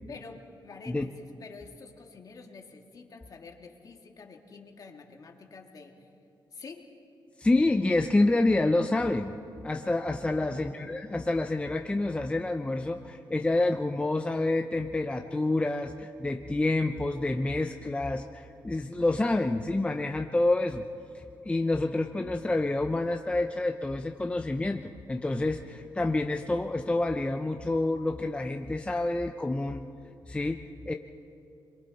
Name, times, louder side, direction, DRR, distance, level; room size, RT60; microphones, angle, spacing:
voice 1, 0.1-6.1 6.5-6.9 10.3-10.8, left 4 dB, 45° left, 2 dB, 2.2 m, -47 dB
voice 2, 7.4-9.3 9.6-20.8 21.1-29.8 30.3-30.9, left 2 dB, 15° left, 5 dB, 0.7 m, -28 dB
30.0 x 22.5 x 4.2 m, 2.6 s
cardioid pair, 95°, 8 cm